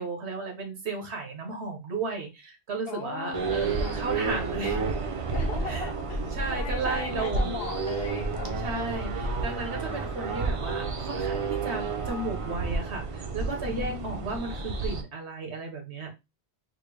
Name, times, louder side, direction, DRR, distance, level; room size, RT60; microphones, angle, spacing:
voice 1, 0.0-4.8 5.6-5.9 6.3-7.7 8.5-16.1, right 3 dB, 85° right, 1.4 m, -34 dB
voice 2, 2.9-4.1 4.6-4.8 5.3-9.1 9.8-10.1 13.6-14.3, left 4 dB, 65° left, 1.1 m, -39 dB
sound 1, 3.3-15.0, right 4 dB, 45° right, 0.4 m, -30 dB
4.3 x 2.1 x 3.2 m
omnidirectional pair, 1.1 m